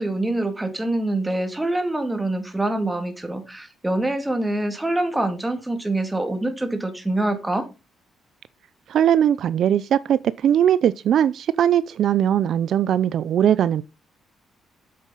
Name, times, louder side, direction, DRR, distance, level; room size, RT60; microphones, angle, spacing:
voice 1, 0.0-7.7, right 2 dB, 10° right, 2.3 m, -25 dB
voice 2, 8.9-13.8, right 10 dB, 65° right, 0.4 m, -20 dB
8.5 x 7.2 x 4.0 m
cardioid pair, 90°, 0 cm